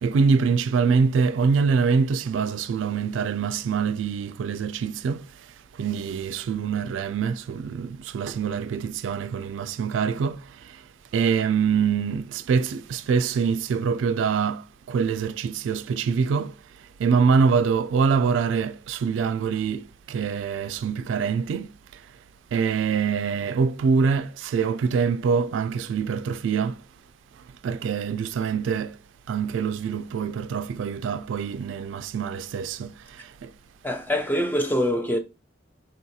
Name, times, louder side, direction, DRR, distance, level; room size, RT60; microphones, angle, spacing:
voice 1, 0.0-5.3 5.8-10.8 11.1-16.5 17.0-21.7 22.5-26.8 27.6-29.0 29.3-33.5, right 5 dB, 85° right, 0.3 m, -24 dB
voice 2, 33.8-35.2, equal, 10° left, 0.3 m, -24 dB
3.8 x 2.3 x 2.7 m
head